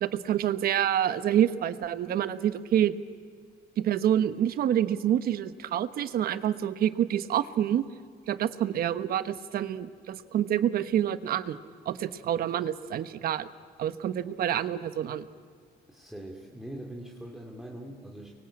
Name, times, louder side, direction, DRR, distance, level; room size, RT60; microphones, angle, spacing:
voice 1, 0.0-2.9 3.8-7.8 8.3-11.6 11.8-13.5 13.8-15.2, right 10 dB, 65° right, 12 dB, 1.2 m, -27 dB
voice 2, 15.9-18.5, right 1 dB, 5° right, -1 dB, 2.6 m, -42 dB
29.5 x 23.0 x 8.7 m, 2.1 s
cardioid pair, 125°, 17 cm